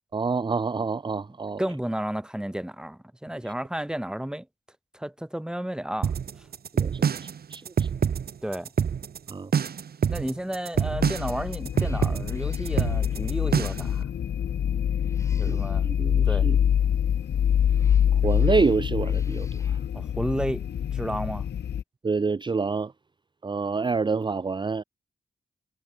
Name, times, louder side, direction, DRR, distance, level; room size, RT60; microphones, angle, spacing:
voice 1, 0.1-1.6 6.7-7.1 7.5-7.9 9.3-9.5 15.5-16.6 18.1-19.8 22.0-22.9 23.4-24.8, right 4 dB, 25° right, 0.5 m, -27 dB
voice 2, 1.6-4.5 4.9-6.5 8.4-8.7 10.1-14.1 15.3-15.9 16.2-16.5 19.9-20.7 20.9-21.4, right 1 dB, 5° right, 1.1 m, -32 dB
sound 1, 6.0-14.0, right 7 dB, 65° right, 0.9 m, -26 dB
sound 2, 10.8-21.8, left 9 dB, 75° left, 0.7 m, -25 dB
Cat, 11.7-13.7 14.8-15.9 17.3-19.9, left 1 dB, 15° left, 5.0 m, -55 dB
cardioid pair, 65°, 17 cm